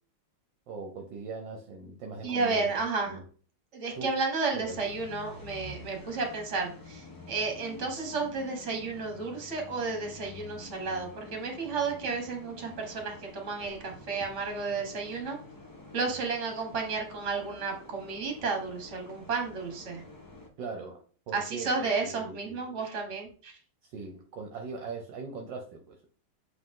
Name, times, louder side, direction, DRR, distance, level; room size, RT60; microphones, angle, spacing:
voice 1, 0.7-2.7 3.1-3.2 3.9-4.2 4.5-4.8 20.6-22.8 23.8-26.1, right 4 dB, 65° right, 4 dB, 1.4 m, -41 dB
voice 2, 2.2-3.2 3.7-15.4 15.9-20.0 21.3-23.5, right 4 dB, 40° right, 3 dB, 1.7 m, -32 dB
sound 1, 4.6-20.5, left 2 dB, 30° left, 0.3 m, -49 dB
7.5 x 3.8 x 3.7 m, 0.42 s
omnidirectional pair, 2.3 m